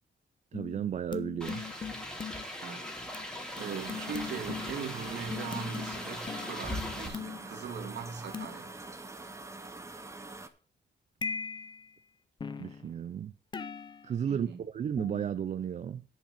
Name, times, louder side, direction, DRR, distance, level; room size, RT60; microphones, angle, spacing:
sound 1, 0.5-2.4 3.1-3.3 3.6-3.7 3.9-4.9 5.3-7.5 8.3-8.6 11.2-11.9 12.4-12.9 13.5-14.1 15.0-15.4, left 6 dB, 25° left, 0.7 m, -40 dB
voice 1, 0.5-1.6 12.6-13.3 14.0-16.0, right 8 dB, 40° right, 0.4 m, -33 dB
sound 2, 1.4-7.1, left 1 dB, 5° left, 1.7 m, -40 dB
sound 3, 3.6-10.5, right 2 dB, 15° right, 0.8 m, -45 dB
voice 2, 3.6-8.8 14.3-14.6, right 6 dB, 65° right, 2.1 m, -40 dB
10.5 x 5.6 x 6.7 m
wide cardioid pair, 180°, 19 cm